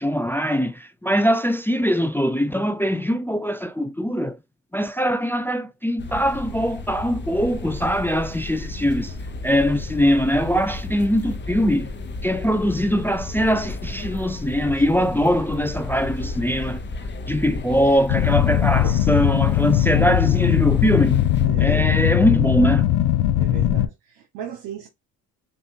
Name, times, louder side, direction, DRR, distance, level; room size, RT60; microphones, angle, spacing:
voice 1, 0.0-4.4 4.7-9.1 9.4-11.9 12.2-16.8 17.3-21.2 21.6-22.9, equal, 5° left, 0.4 m, -22 dB
sound 1, 6.0-21.5, left 3 dB, 30° left, 0.8 m, -33 dB
voice 2, 14.6-15.1 15.5-15.7 18.7-19.0 21.4-22.1 23.4-24.9, right 9 dB, 85° right, 1.1 m, -36 dB
sound 2, 18.1-23.9, left 12 dB, 80° left, 0.6 m, -19 dB
5.5 x 2.5 x 2.7 m
supercardioid pair, 75°, 40 cm